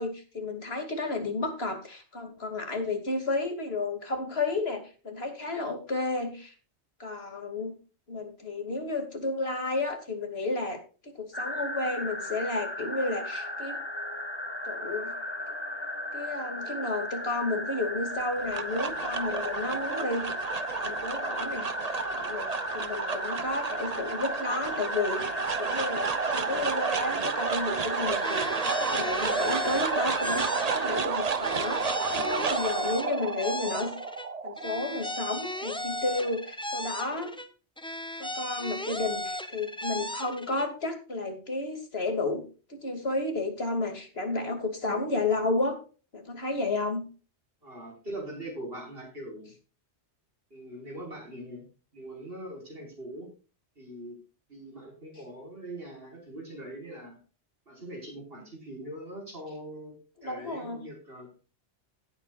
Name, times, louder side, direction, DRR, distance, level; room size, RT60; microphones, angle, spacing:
voice 1, 0.0-6.5 7.0-7.7 8.1-13.8 14.7-15.2 16.1-20.3 20.8-21.9 22.1-28.4 28.8-31.8 32.1-33.9 34.4-37.3 38.2-42.4 42.7-45.8 46.1-47.0 60.2-60.8, left 2 dB, 60° left, 5 dB, 2.9 m, -32 dB
sound 1, 11.3-31.0, left 1 dB, 25° left, 1.8 m, -36 dB
sound 2, 18.2-36.5, right 5 dB, 40° right, 0.9 m, -31 dB
sound 3, 28.2-31.1 31.4-34.3 34.6-37.5 37.8-40.7, left 1 dB, 5° left, 0.9 m, -36 dB
voice 2, 47.6-49.5 50.5-51.6 51.9-53.3 53.8-54.2 54.5-57.2 57.7-61.3, right 1 dB, 55° right, -1 dB, 5.7 m, -42 dB
17.5 x 8.7 x 2.5 m, 0.36 s
omnidirectional pair, 1.1 m